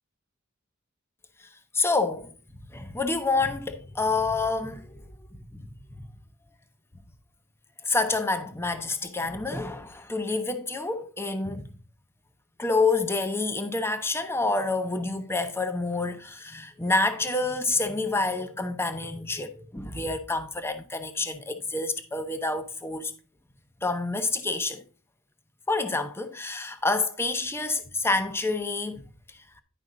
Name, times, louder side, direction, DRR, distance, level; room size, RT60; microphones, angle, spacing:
voice 1, 1.7-2.3 2.7-6.1 7.8-11.7 12.6-23.1 23.8-24.8 25.7-29.0, left 3 dB, 10° left, 0.8 m, -28 dB
11.0 x 5.3 x 3.8 m
head